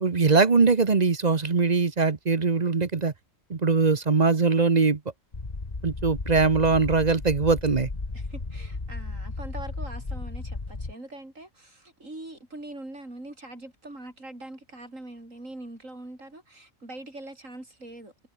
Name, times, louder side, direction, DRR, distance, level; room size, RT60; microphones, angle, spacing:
voice 1, 0.0-3.1 3.5-5.0 5.8-7.9, right 4 dB, 35° right, 1.1 m, -21 dB
sound 1, 5.3-10.9, left 3 dB, 30° left, 2.0 m, -34 dB
voice 2, 8.1-18.1, right 1 dB, 90° right, 7.7 m, -42 dB
omnidirectional pair, 1.3 m